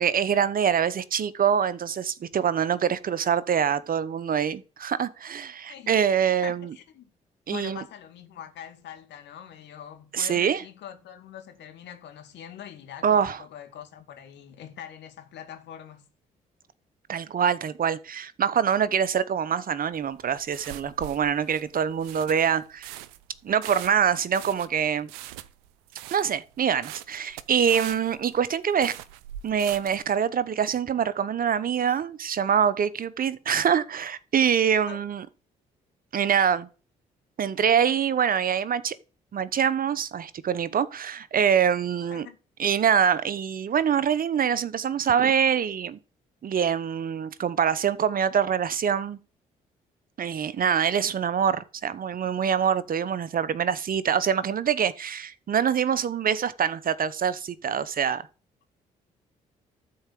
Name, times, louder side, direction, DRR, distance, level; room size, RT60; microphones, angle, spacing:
voice 1, 0.0-6.7 7.5-7.8 10.1-10.6 13.0-13.4 17.1-22.9 23.4-25.1 26.1-28.9 29.4-35.3 36.1-36.7 37.4-38.9 39.3-42.3 42.6-46.0 46.4-49.2 50.2-58.2, right 8 dB, 50° right, 0.9 m, -25 dB
voice 2, 6.3-7.1 7.5-16.1 34.9-35.0 42.0-42.4, left 9 dB, 70° left, 2.3 m, -43 dB
sound 1, 19.9-30.1, right 13 dB, 90° right, 0.6 m, -42 dB
12.5 x 4.7 x 7.6 m
hypercardioid pair, 50°, 19 cm